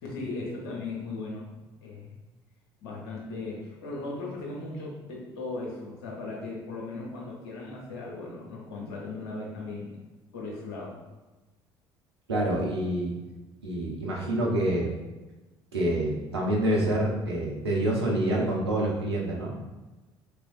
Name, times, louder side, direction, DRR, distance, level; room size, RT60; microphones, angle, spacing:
voice 1, 0.0-1.5 1.8-2.2 2.8-10.0 10.3-11.0, left 3 dB, 75° left, -3 dB, 0.8 m, -37 dB
voice 2, 12.3-13.1 13.6-14.9 15.7-19.6, right 1 dB, 85° right, -3 dB, 0.7 m, -27 dB
3.4 x 3.3 x 2.5 m, 1.1 s
figure-of-eight pair, 60°, 13 cm